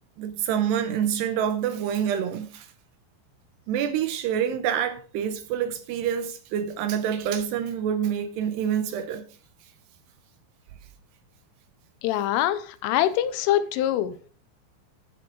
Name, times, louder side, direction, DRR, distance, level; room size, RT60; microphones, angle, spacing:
voice 1, 0.2-2.7 3.7-9.3, right 9 dB, 80° right, 2.6 m, -27 dB
voice 2, 12.0-14.1, left 12 dB, 90° left, 3.4 m, -24 dB
14.0 x 6.1 x 4.8 m
omnidirectional pair, 5.5 m